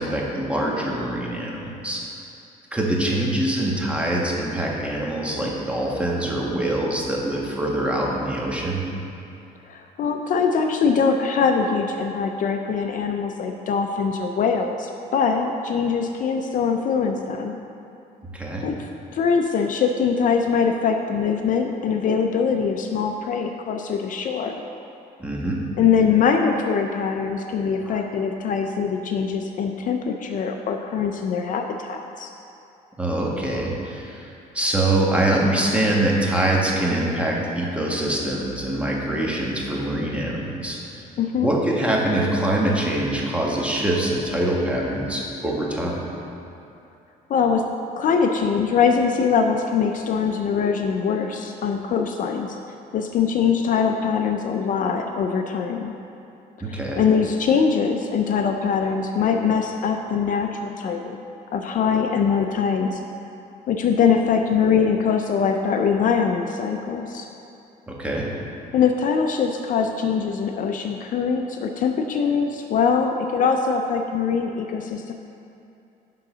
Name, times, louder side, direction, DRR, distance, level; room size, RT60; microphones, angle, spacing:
voice 1, 0.0-2.0 2.7-8.8 18.3-18.7 25.2-25.6 27.8-28.0 33.0-40.8 41.4-46.0 56.6-57.0 67.9-68.3, right 1 dB, 5° right, -3 dB, 1.4 m, -24 dB
voice 2, 9.7-17.6 18.6-24.6 25.8-32.3 41.2-41.5 47.3-47.7 48.0-52.6 52.9-55.9 56.7-61.2 61.5-63.0 63.7-67.3 68.7-75.1, left 6 dB, 50° left, 4 dB, 0.5 m, -22 dB
10.5 x 3.8 x 6.1 m, 2.7 s
cardioid pair, 110°, 17 cm